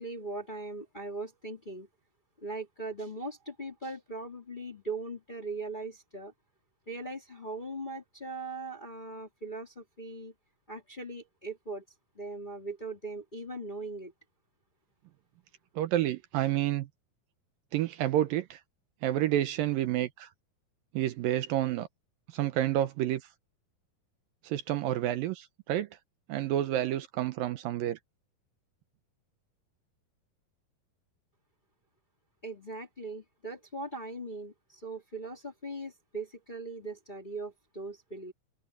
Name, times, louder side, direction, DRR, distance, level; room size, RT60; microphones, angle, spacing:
voice 1, 0.0-1.9 2.4-6.3 6.9-10.3 10.7-11.8 12.2-14.1 32.4-38.3, right 2 dB, 15° left, 2.0 m, -40 dB
voice 2, 15.8-16.9 17.7-18.6 19.0-20.3 20.9-21.9 22.3-23.2 24.4-25.9 26.3-28.0, right 13 dB, 75° right, 2.4 m, -29 dB
open air
omnidirectional pair, 4.3 m